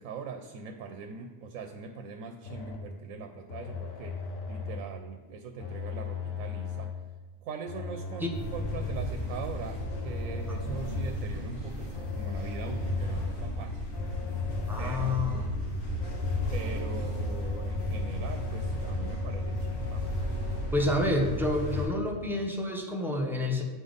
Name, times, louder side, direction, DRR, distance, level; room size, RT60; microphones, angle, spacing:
voice 1, 0.0-4.2 4.5-6.9 7.4-13.9 14.8-15.5 16.5-20.0, right 5 dB, 80° right, 6 dB, 1.0 m, -42 dB
sound 1, 2.4-3.0 3.5-5.0 5.6-7.1 7.7-9.1 9.8-11.2 11.9-13.5 13.9-15.3 16.0-20.7, left 4 dB, 80° left, 1.3 m, -37 dB
sound 2, 8.3-21.9, left 1 dB, 45° left, 2.2 m, -34 dB
voice 2, 14.7-15.4 20.7-23.6, left 1 dB, ahead, -1 dB, 0.5 m, -28 dB
7.8 x 5.1 x 3.9 m, 1.3 s
omnidirectional pair, 1.4 m